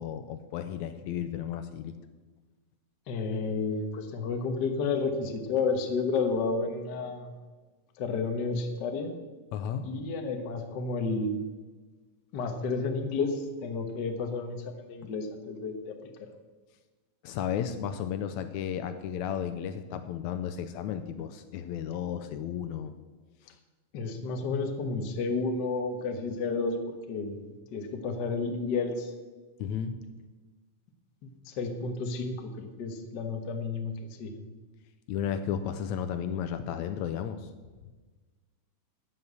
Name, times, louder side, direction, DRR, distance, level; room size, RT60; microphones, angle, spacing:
voice 1, 0.0-1.9 9.5-9.9 17.2-22.9 29.6-29.9 35.1-37.5, left 8 dB, 80° left, 9 dB, 1.9 m, -33 dB
voice 2, 3.1-7.3 8.0-9.1 9.8-11.4 12.3-15.9 23.9-26.8 27.1-27.4 27.7-29.1 31.2-33.9 34.2-34.4, left 4 dB, 55° left, 5 dB, 1.2 m, -31 dB
13.5 x 5.7 x 8.1 m, 1.3 s
omnidirectional pair, 3.5 m